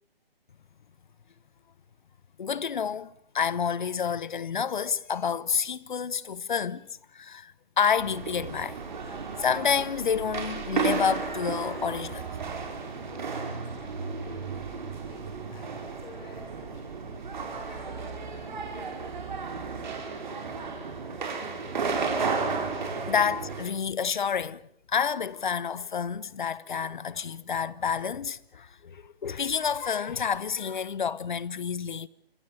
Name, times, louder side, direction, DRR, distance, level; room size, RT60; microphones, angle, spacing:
voice 1, 2.4-6.8 7.1-8.8 9.0-12.4 23.0-24.6 24.9-32.1, left 7 dB, 50° left, 1.0 m, -29 dB
sound 1, 8.0-23.6, right 5 dB, 50° right, 5.0 m, -33 dB
voice 2, 13.1-20.4 21.6-21.8, left 3 dB, 15° left, 6.1 m, -52 dB
26.0 x 20.5 x 7.2 m
figure-of-eight pair, 155°, 30 cm